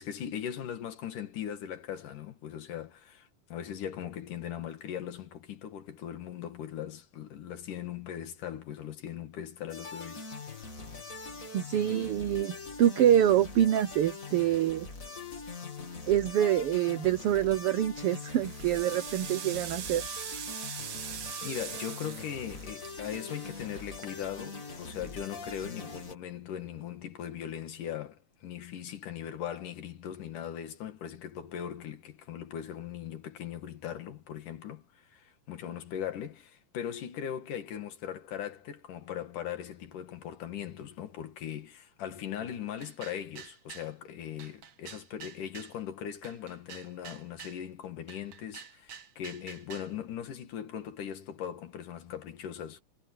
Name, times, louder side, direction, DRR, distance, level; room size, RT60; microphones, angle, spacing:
voice 1, 0.0-10.3 20.9-52.8, left 9 dB, 80° left, 3.5 m, -39 dB
sound 1, 9.7-26.1, left 4 dB, 25° left, 2.6 m, -43 dB
voice 2, 11.5-14.9 16.1-20.0, right 11 dB, 90° right, 1.2 m, -26 dB
sound 2, 17.4-17.8 18.2-24.5, right 9 dB, 75° right, 3.3 m, -42 dB
sound 3, 42.8-43.9 44.4-45.8 46.2-47.6 48.1-49.9, right 7 dB, 55° right, 2.2 m, -48 dB
omnidirectional pair, 3.7 m